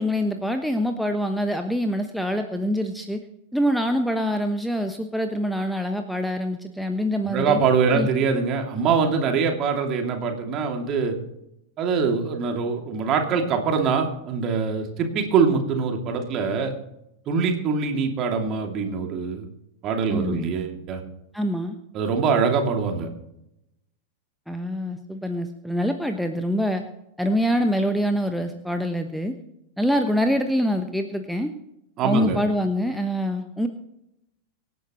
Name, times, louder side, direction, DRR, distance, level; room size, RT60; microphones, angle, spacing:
voice 1, 0.0-3.2 3.5-7.6 7.9-8.1 20.1-20.4 21.3-21.8 24.5-26.8 27.2-29.3 29.8-31.5 32.0-33.7, equal, ahead, 5 dB, 1.1 m, -25 dB
voice 2, 7.2-11.1 11.8-16.7 17.3-19.5 19.8-21.0 21.9-23.1 32.0-32.4, right 5 dB, 35° right, 3 dB, 2.7 m, -23 dB
25.0 x 11.0 x 3.1 m, 0.84 s
figure-of-eight pair, 90°, 0 cm